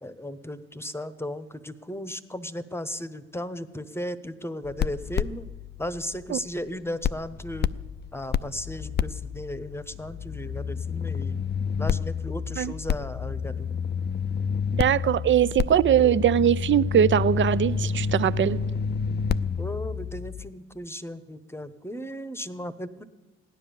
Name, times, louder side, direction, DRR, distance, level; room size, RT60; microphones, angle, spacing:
voice 1, 0.0-5.5 5.8-7.7 8.1-11.4 11.8-13.7 19.6-23.0, left 1 dB, 10° left, 1.0 m, -35 dB
sound 1, 4.6-6.7 7.0-20.5, left 6 dB, 35° left, 0.5 m, -29 dB
voice 2, 14.8-18.6, right 9 dB, 40° right, 0.6 m, -21 dB
15.5 x 10.0 x 7.0 m
hypercardioid pair, 50°, 30 cm